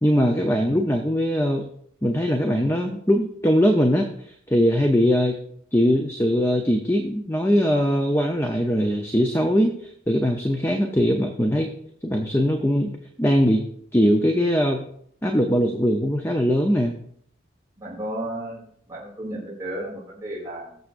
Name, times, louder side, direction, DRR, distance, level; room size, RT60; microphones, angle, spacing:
voice 1, 0.0-1.6 2.0-5.4 5.7-9.7 10.1-11.7 12.0-12.9 13.2-13.6 13.9-14.8 15.2-16.9, equal, 15° left, 3 dB, 0.7 m, -21 dB
voice 2, 17.8-20.8, right 1 dB, 15° right, -7 dB, 3.1 m, -34 dB
21.0 x 7.0 x 2.6 m, 0.65 s
head